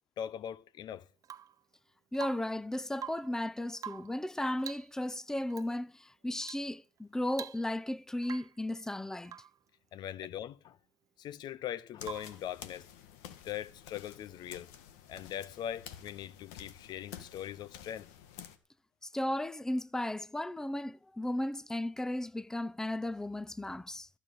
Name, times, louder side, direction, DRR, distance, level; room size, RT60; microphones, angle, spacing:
voice 1, 0.2-1.1 9.9-10.8 11.2-12.9 13.4-14.7 15.1-18.1, left 10 dB, 55° left, 0.7 m, -41 dB
Rain / Water tap faucet / Drip, 1.2-1.6 2.1-2.6 2.9-3.4 3.8-4.2 4.6-4.9 5.5-5.7 6.4-6.7 7.0-7.1 7.3-7.9 8.2-8.6 9.2-9.6 12.0-12.4 14.3-14.4, right 9 dB, 40° right, 0.7 m, -46 dB
voice 2, 2.1-9.4 19.0-24.1, left 1 dB, 5° left, 0.7 m, -35 dB
sound 1, 12.0-18.6, left 10 dB, 85° left, 1.7 m, -50 dB
14.5 x 8.0 x 7.9 m
supercardioid pair, 90°, 9 cm